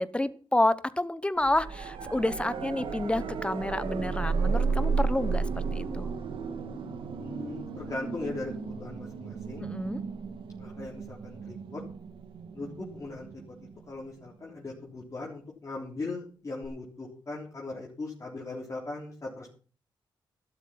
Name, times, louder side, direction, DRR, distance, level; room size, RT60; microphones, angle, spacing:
voice 1, 0.0-6.1 9.6-10.0, left 1 dB, 15° left, 15 dB, 1.0 m, -29 dB
sound 1, 1.4-14.3 16.6-16.7, right 5 dB, 90° right, 1.8 m, -33 dB
voice 2, 7.2-9.7 10.6-11.8 12.5-13.3 13.9-19.5, left 3 dB, 35° left, -3 dB, 3.6 m, -39 dB
12.5 x 12.0 x 5.9 m, 0.40 s
cardioid pair, 90°, 9 cm